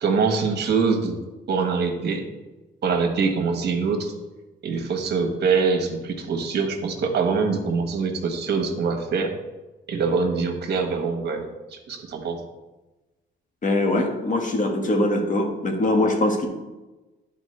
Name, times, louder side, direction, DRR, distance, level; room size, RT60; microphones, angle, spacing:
voice 1, 0.0-1.2 1.5-2.2 2.8-4.1 4.6-9.3 9.9-12.4, right 5 dB, 55° right, 5 dB, 1.3 m, -24 dB
voice 2, 13.6-16.5, left 1 dB, 40° left, 2 dB, 1.5 m, -22 dB
11.0 x 4.2 x 3.3 m, 1.1 s
cardioid pair, 90°, 20 cm